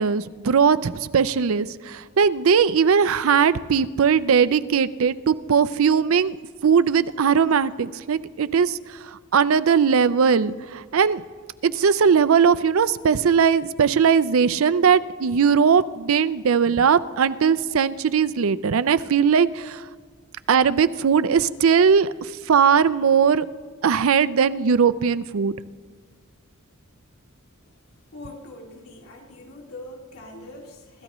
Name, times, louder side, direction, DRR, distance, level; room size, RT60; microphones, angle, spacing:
voice 1, 0.0-6.4 6.6-11.2 11.6-19.9 20.5-23.5 23.8-25.5, right 6 dB, 70° right, 15 dB, 0.5 m, -19 dB
voice 2, 28.1-31.0, left 1 dB, 80° left, 0 dB, 2.4 m, -42 dB
26.0 x 13.5 x 3.1 m, 1.6 s
head